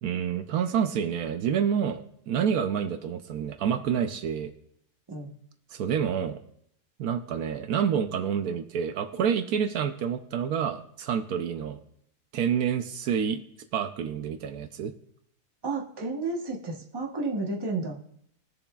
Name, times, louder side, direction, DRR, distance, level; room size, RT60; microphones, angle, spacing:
voice 1, 0.0-4.5 5.7-6.4 7.0-11.8 12.3-13.4 13.7-14.9, right 8 dB, 75° right, 8 dB, 1.1 m, -28 dB
voice 2, 15.6-18.0, right 3 dB, 20° right, 0 dB, 0.9 m, -31 dB
21.0 x 7.0 x 2.3 m, 0.70 s
omnidirectional pair, 1.6 m